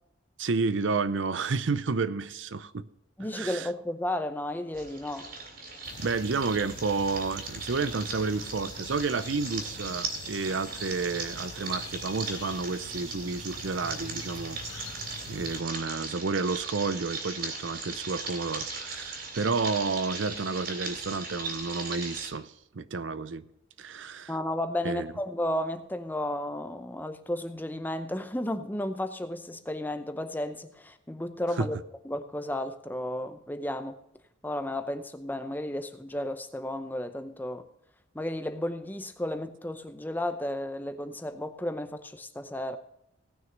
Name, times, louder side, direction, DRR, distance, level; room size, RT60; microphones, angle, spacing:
voice 1, 0.4-2.9 3.3-3.7 6.0-15.0 15.3-23.4 23.8-24.3 24.8-25.1 31.6-31.7, right 4 dB, 65° right, 0.6 m, -31 dB
voice 2, 3.2-5.3 24.3-31.8 32.0-34.0 34.4-37.7 38.1-42.8, left 1 dB, 10° left, 0.6 m, -33 dB
sound 1, 4.7-22.3, right 4 dB, 50° right, 3.2 m, -38 dB
sound 2, 5.8-15.6, left 3 dB, 55° left, 0.9 m, -45 dB
17.5 x 6.4 x 5.2 m
head